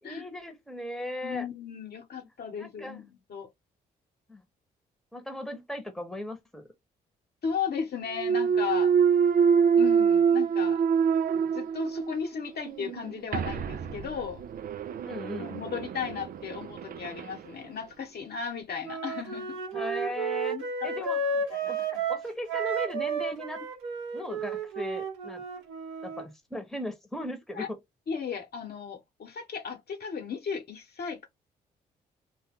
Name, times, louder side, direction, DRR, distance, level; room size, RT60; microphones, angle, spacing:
voice 1, 0.0-1.5 2.6-3.0 4.3-4.4 5.1-6.7 15.0-15.5 19.7-20.6 20.8-23.6 24.1-25.4 26.0-27.8, left 1 dB, ahead, 1.0 m, -37 dB
voice 2, 1.2-3.5 7.4-8.9 9.7-10.8 11.3-14.4 15.3-19.6 20.5-21.1 21.5-21.7 27.5-27.7 28.1-31.3, left 6 dB, 55° left, 1.1 m, -35 dB
Thump thud, 8.1-12.2 12.6-17.3, right 7 dB, 45° right, 0.4 m, -25 dB
Wind instrument woodwind instrument, 18.8-26.3, right 4 dB, 85° right, 0.6 m, -32 dB
2.3 x 2.1 x 3.5 m
hypercardioid pair, 50°, 20 cm